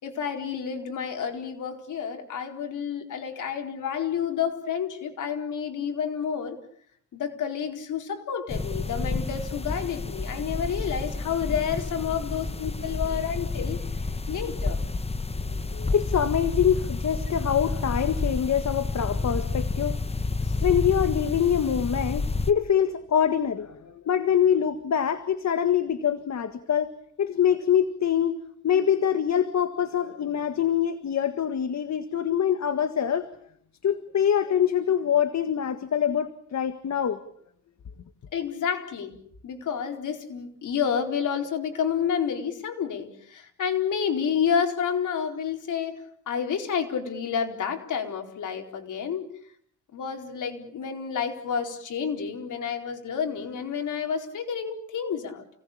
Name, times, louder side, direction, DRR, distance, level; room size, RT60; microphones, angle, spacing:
voice 1, 0.0-6.6 7.1-14.0 14.3-14.8 38.3-39.2 39.4-49.2 49.9-55.4, left 7 dB, 90° left, 4 dB, 4.4 m, -29 dB
sound 1, 8.5-22.5, left 3 dB, 20° left, 1.1 m, -30 dB
voice 2, 15.6-20.0 20.6-26.9 27.2-28.4 28.6-33.3 33.8-37.2, left 8 dB, 65° left, 10 dB, 1.7 m, -24 dB
29.5 x 18.5 x 8.7 m, 0.65 s
cardioid pair, 95°, 30 cm